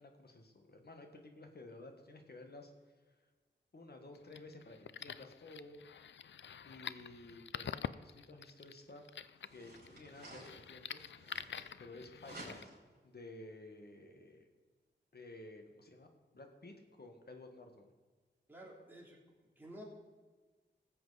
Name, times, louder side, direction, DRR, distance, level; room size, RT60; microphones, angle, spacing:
voice 1, 0.0-2.7 3.7-5.8 6.6-9.0 9.5-11.0 11.8-12.5 13.0-14.5 15.1-17.9, left 2 dB, 55° left, 4 dB, 1.6 m, -53 dB
sound 1, 4.1-12.6, left 8 dB, 70° left, 0.4 m, -47 dB
sound 2, 8.7-8.8 9.4-11.9 12.2-13.0, right 2 dB, 55° right, 4.0 m, -54 dB
voice 2, 18.5-19.2 19.6-19.8, equal, 10° right, -3 dB, 3.2 m, -51 dB
19.0 x 7.8 x 4.1 m, 1.3 s
wide cardioid pair, 100°, 19 cm